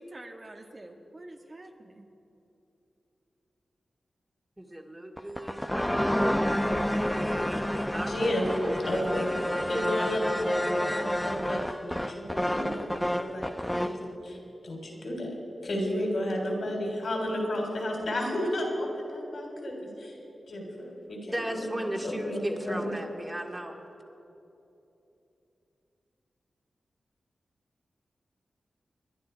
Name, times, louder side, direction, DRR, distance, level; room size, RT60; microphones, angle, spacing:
voice 1, 0.0-2.0, right 1 dB, 45° right, 3 dB, 1.6 m, -46 dB
voice 2, 4.6-9.0 21.2-23.8, right 1 dB, 20° right, 1 dB, 2.3 m, -38 dB
sound 1, 5.2-14.0, equal, 10° left, 0.8 m, -29 dB
voice 3, 7.9-8.5 8.9-9.3 9.7-14.4 14.6-15.3 15.6-20.1 20.5-22.4 22.6-22.9, left 1 dB, 70° left, 1 dB, 3.7 m, -32 dB
26.0 x 10.5 x 4.6 m, 2.9 s
cardioid pair, 40°, 0 cm